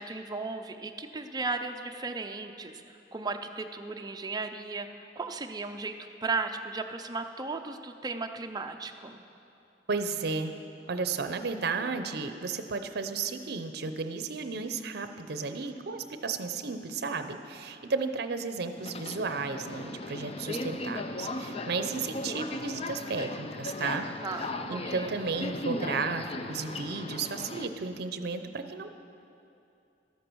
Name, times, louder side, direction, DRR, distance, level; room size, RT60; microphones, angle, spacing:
voice 1, 0.0-2.8 3.1-9.2 24.2-25.1, right 3 dB, 25° right, 6 dB, 0.5 m, -36 dB
voice 2, 9.9-10.5 10.9-24.1 24.7-29.0, right 4 dB, 60° right, 8 dB, 0.6 m, -33 dB
Subway metro underground, 18.8-27.7, left 2 dB, 35° left, 0.5 m, -37 dB
13.0 x 8.2 x 6.2 m, 2.7 s
head